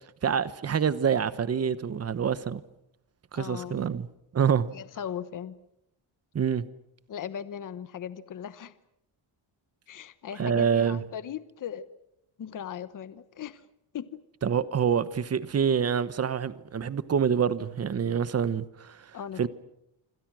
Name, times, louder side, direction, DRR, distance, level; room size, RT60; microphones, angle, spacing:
voice 1, 0.2-2.6 3.3-4.1 4.3-4.7 6.3-6.6 10.4-11.0 14.4-19.1 19.4-19.5, right 7 dB, 30° right, 1.1 m, -26 dB
voice 2, 3.3-3.9 4.7-5.6 7.1-8.7 9.9-11.9 12.4-13.6 13.9-14.2 19.1-19.5, left 9 dB, 45° left, 1.1 m, -38 dB
27.0 x 26.5 x 6.3 m
wide cardioid pair, 175°, 46 cm